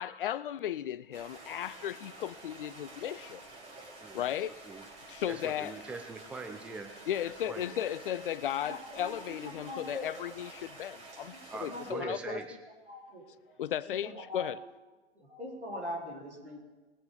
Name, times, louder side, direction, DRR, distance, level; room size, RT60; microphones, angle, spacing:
voice 1, 0.0-3.4 4.1-4.6 5.1-5.8 7.1-12.4 13.6-14.6, left 11 dB, 55° left, 0.5 m, -35 dB
Stream, 1.1-11.9, right 2 dB, 20° right, 3.5 m, -50 dB
voice 2, 5.3-6.9 7.2-7.8 11.5-12.5, right 4 dB, 5° right, 0.7 m, -42 dB
voice 3, 8.6-10.1 11.3-12.4 12.9-13.5 14.0-14.7 15.1-16.6, left 1 dB, 80° right, 4.3 m, -42 dB
20.0 x 6.9 x 5.1 m
figure-of-eight pair, 110°, 33 cm